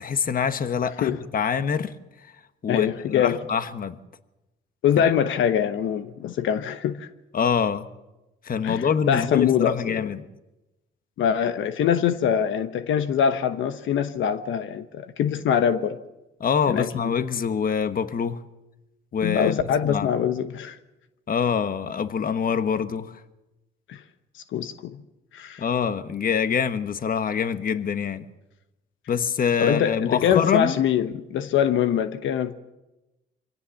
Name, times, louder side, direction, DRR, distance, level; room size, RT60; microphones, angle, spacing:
voice 1, 0.0-1.9 2.6-4.0 5.0-5.1 7.3-7.9 8.4-10.2 16.4-18.4 19.1-20.1 21.3-23.2 25.6-28.2 29.1-30.8, left 7 dB, 45° left, 1.3 m, -25 dB
voice 2, 2.7-3.4 4.8-7.1 8.6-9.8 11.2-16.0 16.7-17.1 19.2-20.8 23.9-24.0 24.5-25.0 25.3-25.6 29.6-32.5, left 8 dB, 75° left, 1.1 m, -23 dB
24.5 x 17.0 x 7.2 m
cardioid pair, 90°, 20 cm